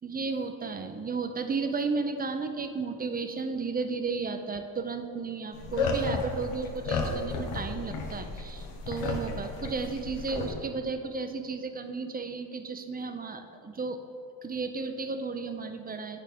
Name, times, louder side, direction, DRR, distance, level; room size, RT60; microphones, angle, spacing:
voice 1, 0.0-14.0 14.4-16.2, right 4 dB, 20° right, 7 dB, 0.4 m, -33 dB
sound 1, 5.5-10.5, left 3 dB, 90° left, 0.9 m, -33 dB
8.4 x 4.4 x 3.4 m, 2.6 s
cardioid pair, 80°, 48 cm